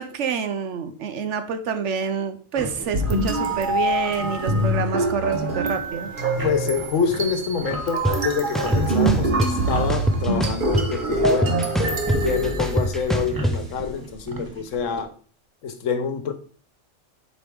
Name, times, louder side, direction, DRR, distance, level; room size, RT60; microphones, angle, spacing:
voice 1, 0.0-6.1, right 6 dB, 70° right, 9 dB, 1.0 m, -27 dB
sound 1, 2.5-15.0, right 1 dB, 20° right, 0.9 m, -38 dB
sound 2, 2.9-13.2, right 2 dB, 45° right, 1.2 m, -25 dB
voice 2, 6.4-15.1 15.6-16.3, left 6 dB, 75° left, 9 dB, 1.2 m, -26 dB
sound 3, 8.0-8.1 8.5-9.5 9.9-11.0 11.2-13.5, right 1 dB, ahead, 0.3 m, -23 dB
8.0 x 5.2 x 3.5 m, 0.42 s
omnidirectional pair, 1.3 m